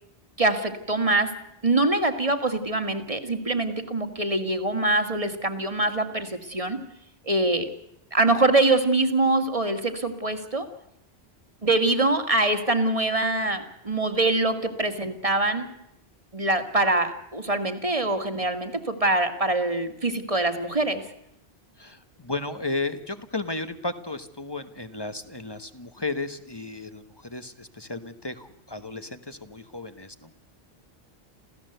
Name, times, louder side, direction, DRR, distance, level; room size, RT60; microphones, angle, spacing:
voice 1, 0.4-1.3 1.6-6.8 7.3-7.7 8.1-10.7 11.6-15.7 16.3-21.1, right 2 dB, 35° right, 8 dB, 2.1 m, -24 dB
voice 2, 21.8-30.4, left 2 dB, 25° left, 10 dB, 1.3 m, -34 dB
28.0 x 16.0 x 7.9 m, 0.79 s
omnidirectional pair, 1.1 m